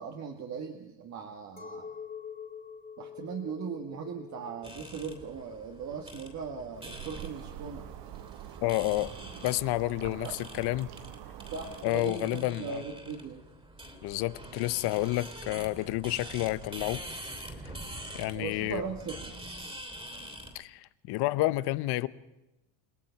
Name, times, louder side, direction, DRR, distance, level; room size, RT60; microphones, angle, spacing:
voice 1, 0.0-2.0 3.0-7.9 11.5-13.4 18.2-19.4, right 6 dB, 35° right, 1.9 m, -39 dB
Chink clink, 1.6-7.0, left 7 dB, 15° left, 3.0 m, -46 dB
sound 1, 4.6-20.6, right 1 dB, 10° right, 3.1 m, -45 dB
sound 2, 6.7-11.8, right 12 dB, 55° right, 1.3 m, -45 dB
voice 2, 8.6-9.1 9.4-10.9 11.8-12.8 14.0-17.0 18.1-18.8 20.5-22.1, left 18 dB, 50° left, 0.9 m, -30 dB
30.0 x 17.5 x 5.9 m
cardioid pair, 140°, 50 cm